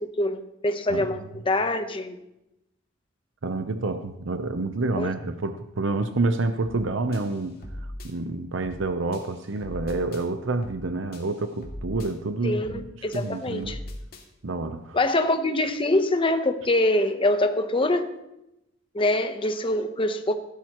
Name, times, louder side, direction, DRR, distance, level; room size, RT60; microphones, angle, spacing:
voice 1, 0.0-2.2 5.0-5.1 12.4-13.8 14.9-18.2 18.9-20.3, left 1 dB, 25° left, 7 dB, 0.9 m, -24 dB
voice 2, 3.4-7.6 8.0-12.8 13.1-13.8 14.4-15.0, right 3 dB, 85° right, 8 dB, 0.7 m, -28 dB
sound 1, 6.6-6.9 7.1-8.1 8.6-8.9 9.1-10.2 10.6-10.9 11.1-12.1 12.6-12.9 13.1-14.2, left 1 dB, 50° left, 2.2 m, -40 dB
16.0 x 12.0 x 3.0 m, 0.88 s
head